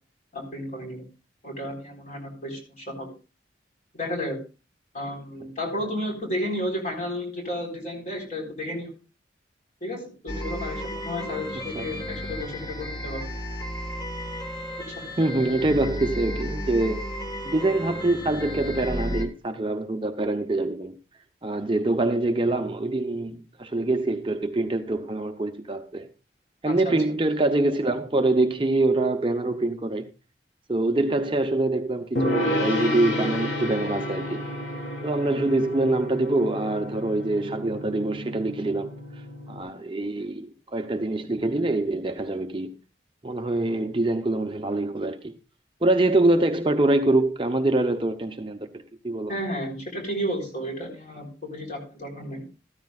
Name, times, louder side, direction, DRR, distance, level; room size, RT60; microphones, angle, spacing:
voice 1, 0.3-1.0 1.4-3.1 3.9-4.4 4.9-8.9 9.8-13.3 14.9-15.1 26.6-26.9 49.3-52.4, equal, 40° left, 4.1 m, -32 dB
sound 1, 10.3-19.3, equal, 20° left, 1.4 m, -33 dB
voice 2, 15.2-17.1 17.4-21.0 21.4-26.1 26.6-30.1 30.7-34.4 35.0-38.9 39.5-42.8 43.2-45.3 45.8-49.3, right 2 dB, 25° right, 0.7 m, -25 dB
Gong, 32.2-39.6, left 1 dB, 75° left, 2.9 m, -31 dB
13.5 x 13.5 x 2.4 m
head